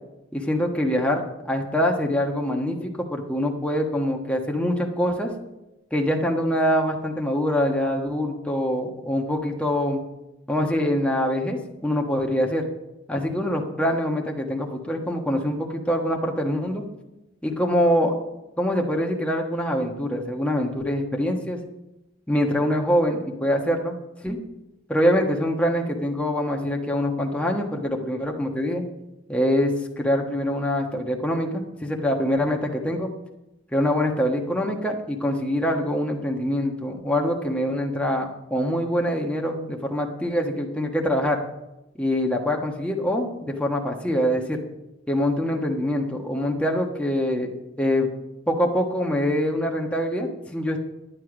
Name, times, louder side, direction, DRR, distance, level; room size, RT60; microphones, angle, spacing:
voice 1, 0.3-5.3 5.9-10.0 10.5-12.6 13.1-16.9 17.4-18.1 18.6-21.6 22.3-24.4 24.9-28.8 29.3-33.1 33.7-41.4 42.0-44.6 45.1-47.5 47.8-48.1 48.5-50.8, equal, 5° left, 0 dB, 1.3 m, -24 dB
11.5 x 9.8 x 5.0 m, 0.95 s
head